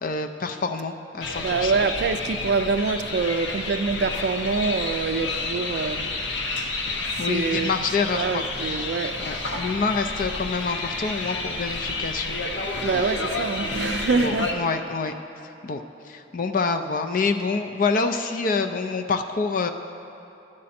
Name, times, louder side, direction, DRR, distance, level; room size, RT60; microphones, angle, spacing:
voice 1, 0.0-1.7 7.2-8.4 9.2-12.4 14.1-15.1 15.6-19.7, left 4 dB, 45° left, 0.4 m, -27 dB
sound 1, 1.2-14.5, left 3 dB, 75° left, 0.9 m, -30 dB
voice 2, 1.4-6.1 7.2-7.7 8.1-9.2 12.8-14.5, right 4 dB, 60° right, 0.3 m, -25 dB
13.0 x 8.6 x 4.2 m
head